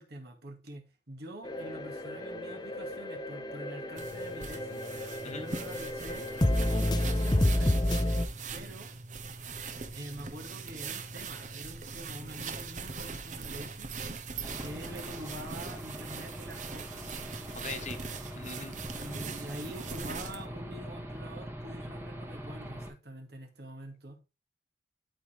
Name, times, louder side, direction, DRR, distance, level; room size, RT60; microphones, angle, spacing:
voice 1, 0.0-4.8 5.3-6.3 6.7-7.8 8.5-8.9 9.9-13.9 14.6-17.1 18.9-24.2, right 1 dB, 60° right, 2.0 m, -45 dB
sound 1, 1.4-8.2, left 1 dB, 25° left, 0.7 m, -30 dB
sound 2, 4.0-20.5, right 4 dB, 45° right, 0.9 m, -41 dB
Aircraft / Engine, 14.4-22.9, equal, 15° right, 1.2 m, -42 dB
voice 2, 17.5-18.0 18.3-18.7, left 3 dB, 40° left, 1.2 m, -40 dB
12.5 x 4.7 x 3.4 m
head